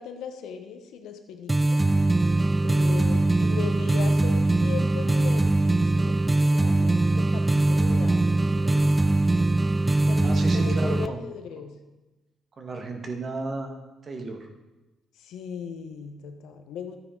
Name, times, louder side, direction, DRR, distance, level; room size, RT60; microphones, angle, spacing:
voice 1, 0.0-1.8 2.6-9.2 10.1-11.8 15.2-17.0, left 7 dB, 85° left, 6 dB, 1.0 m, -39 dB
sound 1, 1.5-11.1, right 2 dB, 15° right, 0.3 m, -22 dB
voice 2, 10.2-11.2 12.6-13.7 14.0-14.5, right 3 dB, 40° right, 4 dB, 1.6 m, -33 dB
12.0 x 9.3 x 3.8 m, 1.1 s
cardioid pair, 90°, 0 cm